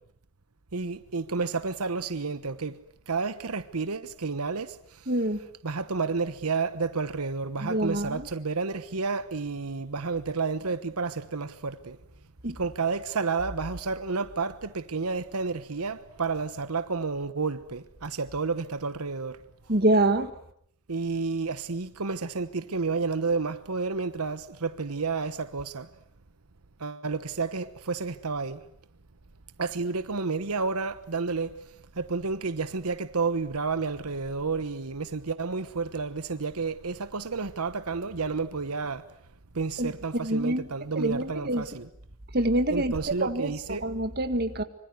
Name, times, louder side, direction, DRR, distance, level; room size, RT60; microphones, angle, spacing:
voice 1, 0.7-2.8 3.1-4.7 5.6-12.0 12.6-19.4 20.9-25.9 26.8-28.6 29.6-31.5 32.0-39.0 39.6-41.9 42.7-43.8, right 4 dB, 90° right, 1.1 m, -30 dB
voice 2, 5.1-5.4 7.6-8.2 12.4-12.6 19.7-20.3 39.8-39.9 40.2-40.6 41.0-41.6 42.3-42.9 43.2-43.5 43.8-44.6, right 1 dB, 45° right, 1.9 m, -25 dB
25.5 x 25.0 x 9.4 m
head